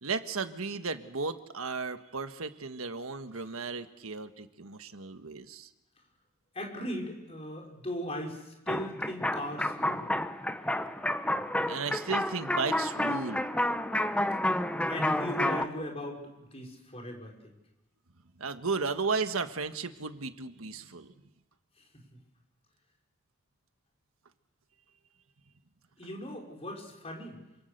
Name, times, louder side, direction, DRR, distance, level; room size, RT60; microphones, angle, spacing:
voice 1, 0.0-5.7 11.7-13.5 18.4-21.1, right 4 dB, 80° right, 9 dB, 1.5 m, -34 dB
voice 2, 6.5-10.1 14.9-17.3 21.8-22.2 26.0-27.4, equal, 30° left, 0 dB, 5.4 m, -38 dB
sound 1, 8.7-15.6, left 1 dB, 5° left, 0.8 m, -30 dB
28.0 x 26.0 x 6.8 m, 0.95 s
head